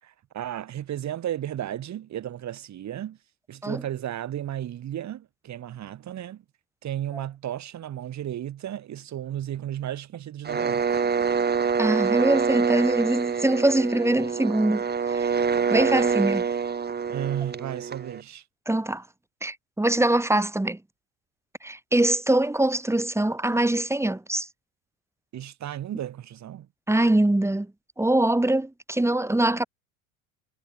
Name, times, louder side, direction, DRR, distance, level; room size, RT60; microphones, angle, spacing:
voice 1, 0.0-3.2 3.5-6.4 6.8-11.0 17.1-18.4 25.3-26.7, right 11 dB, 40° right, 7.6 m, -34 dB
sound 1, 10.4-18.2, right 6 dB, 25° right, 3.2 m, -26 dB
voice 2, 11.8-15.3 15.7-16.4 18.7-19.0 19.4-20.8 21.6-24.5 26.9-27.7 28.0-29.6, right 1 dB, 5° right, 3.9 m, -23 dB
hypercardioid pair, 75°, 41 cm